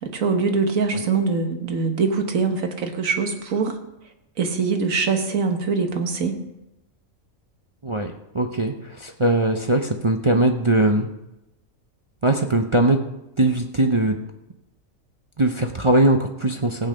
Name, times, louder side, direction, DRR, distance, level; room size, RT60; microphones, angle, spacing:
voice 1, 0.0-3.8 4.4-6.4, right 4 dB, 70° right, 5 dB, 1.7 m, -23 dB
voice 2, 7.8-11.1 12.2-13.0 13.4-14.2 15.4-16.9, right 2 dB, 35° right, 4 dB, 0.5 m, -20 dB
15.5 x 8.7 x 5.2 m, 0.92 s
omnidirectional pair, 1.5 m